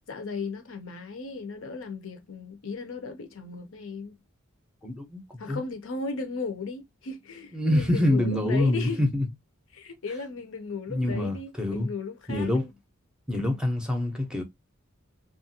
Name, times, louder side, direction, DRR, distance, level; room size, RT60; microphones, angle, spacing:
voice 1, 0.1-4.2 5.4-9.0 9.7-12.7, left 4 dB, 65° left, 0.6 m, -36 dB
voice 2, 4.8-5.2 5.5-5.6 7.5-9.3 10.9-11.9 12.3-12.6 13.3-14.4, left 1 dB, 5° right, 0.7 m, -25 dB
3.0 x 2.4 x 2.7 m
head